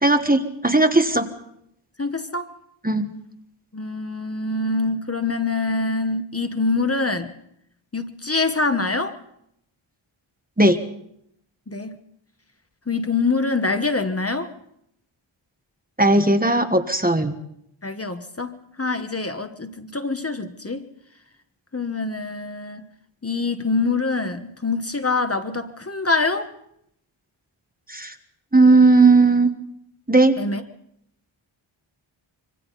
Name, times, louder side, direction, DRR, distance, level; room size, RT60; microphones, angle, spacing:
voice 1, 0.0-1.3 2.8-3.1 10.6-10.8 16.0-17.3 27.9-28.1 28.5-29.5 30.1-30.3, right 2 dB, 20° right, 7 dB, 1.4 m, -16 dB
voice 2, 2.0-2.5 3.7-7.3 7.9-9.2 11.7-12.0 12.9-14.5 17.8-20.9 21.7-22.9 23.2-26.5 30.4-30.6, left 3 dB, 30° left, 8 dB, 1.3 m, -25 dB
26.0 x 24.5 x 4.1 m, 0.73 s
wide cardioid pair, 85°, 49 cm